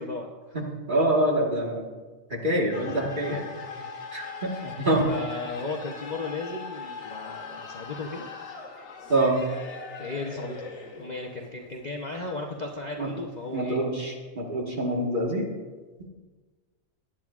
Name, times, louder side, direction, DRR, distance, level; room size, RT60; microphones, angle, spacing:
voice 1, 0.0-0.6 2.9-3.0 3.3-3.4 3.8-3.9 4.4-4.7 5.0-8.3 9.9-10.7 11.0-13.8, left 3 dB, 40° left, 0 dB, 0.7 m, -35 dB
voice 2, 0.5-1.9 2.3-3.4 4.1-5.0 9.1-9.4 13.0-13.1 13.5-15.5, right 1 dB, 35° right, -1 dB, 1.7 m, -26 dB
sound 1, 2.7-13.6, left 4 dB, 60° left, 1.4 m, -41 dB
18.0 x 10.0 x 2.4 m, 1.4 s
omnidirectional pair, 1.4 m